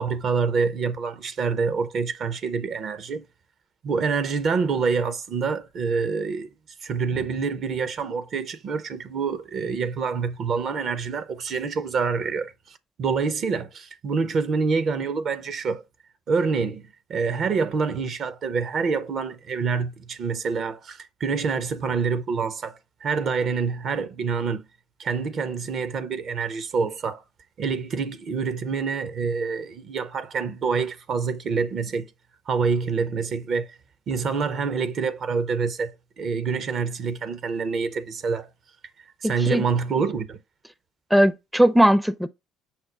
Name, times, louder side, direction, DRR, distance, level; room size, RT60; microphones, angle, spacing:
voice 1, 0.0-3.2 3.8-6.5 6.8-12.5 13.0-15.8 16.3-24.6 25.0-27.2 27.6-32.1 32.5-33.7 34.1-38.5 39.2-40.4, right 5 dB, 55° right, 0.6 m, -26 dB
voice 2, 39.2-39.6 41.1-42.3, equal, 5° right, 0.4 m, -19 dB
5.6 x 2.1 x 3.9 m
hypercardioid pair, 50°, 0 cm